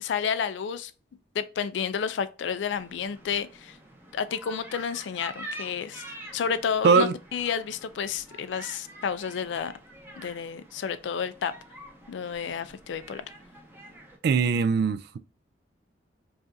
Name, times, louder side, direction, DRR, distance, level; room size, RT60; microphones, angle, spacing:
voice 1, 0.0-0.9 1.3-3.8 4.1-6.0 6.3-9.7 10.2-11.5 12.1-13.2, left 7 dB, 80° left, 0.4 m, -31 dB
sound 1, 2.7-14.2, right 1 dB, 10° right, 0.7 m, -46 dB
voice 2, 14.2-15.2, right 5 dB, 60° right, 0.3 m, -21 dB
4.8 x 2.4 x 2.6 m
head